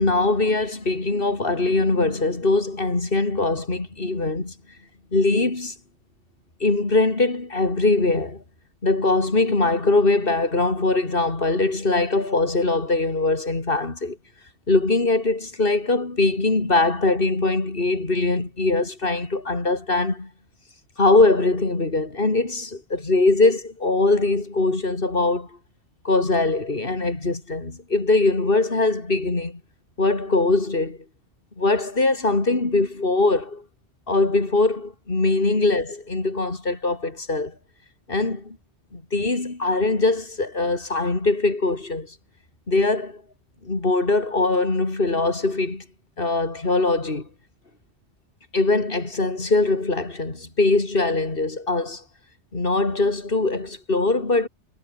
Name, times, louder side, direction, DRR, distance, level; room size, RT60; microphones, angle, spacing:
voice 1, 0.0-4.5 5.1-5.7 6.6-8.4 8.8-14.2 14.7-20.3 21.0-25.5 26.0-29.6 30.0-31.0 31.6-33.6 34.1-37.5 38.1-38.6 38.9-42.1 42.7-43.2 43.6-45.8 46.2-47.3 48.5-52.0 52.5-54.5, left 2 dB, 50° left, 3.4 m, -22 dB
omnidirectional pair, 1.2 m